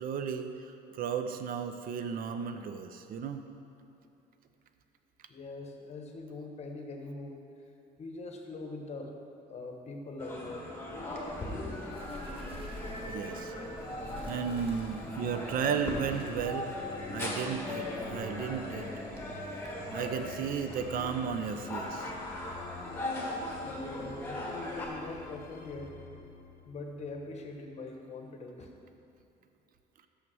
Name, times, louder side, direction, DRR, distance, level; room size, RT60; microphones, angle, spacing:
voice 1, 0.0-3.4 13.1-13.5 14.3-16.7 17.1-18.9 19.9-22.1, right 7 dB, 60° right, 8 dB, 0.5 m, -34 dB
voice 2, 5.3-7.4 8.0-9.1 9.5-10.8 23.6-26.0 26.6-28.7, left 3 dB, 40° left, 3 dB, 1.0 m, -42 dB
sound 1, 10.2-24.9, left 1 dB, 15° left, 1.6 m, -39 dB
Bird, 11.1-19.4, equal, 35° right, 1.3 m, -48 dB
sound 2, 13.5-27.9, left 3 dB, 60° left, 0.7 m, -48 dB
6.4 x 6.0 x 6.1 m, 2.8 s
cardioid pair, 110°, 17 cm